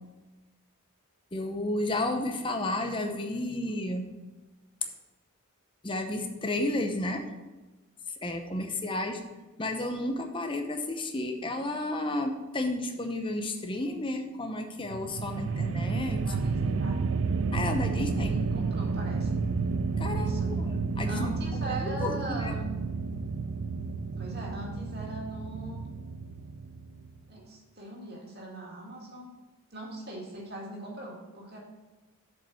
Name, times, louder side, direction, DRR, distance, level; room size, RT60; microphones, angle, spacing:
voice 1, 1.3-4.1 5.8-7.2 8.2-9.2 9.6-16.2 17.5-18.3 20.0-21.3 21.7-22.5, left 1 dB, 20° left, 5 dB, 0.8 m, -32 dB
sound 1, 14.8-27.2, right 4 dB, 60° right, 0.4 m, -31 dB
voice 2, 16.2-17.0 17.9-19.3 20.1-20.6 21.0-22.7 24.2-25.8 27.3-29.3 29.7-31.6, right 1 dB, 45° right, -2 dB, 2.1 m, -40 dB
7.3 x 5.2 x 7.1 m, 1.2 s
head